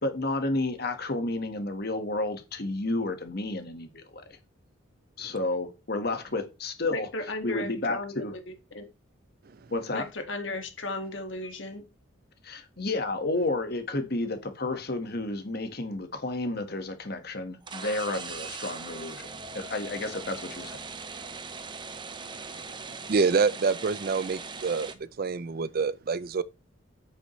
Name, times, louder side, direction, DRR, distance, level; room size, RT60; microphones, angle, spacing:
voice 1, 0.0-4.4 5.2-7.1 7.4-8.3 9.7-10.1 12.4-20.8, left 2 dB, 50° left, 1.5 m, -31 dB
voice 2, 6.9-8.9 9.9-11.9, left 2 dB, 65° left, 1.9 m, -36 dB
sound 1, 17.6-24.9, right 4 dB, 25° right, 0.7 m, -40 dB
voice 3, 23.1-26.4, right 5 dB, 50° right, 0.4 m, -26 dB
8.5 x 7.9 x 3.2 m
head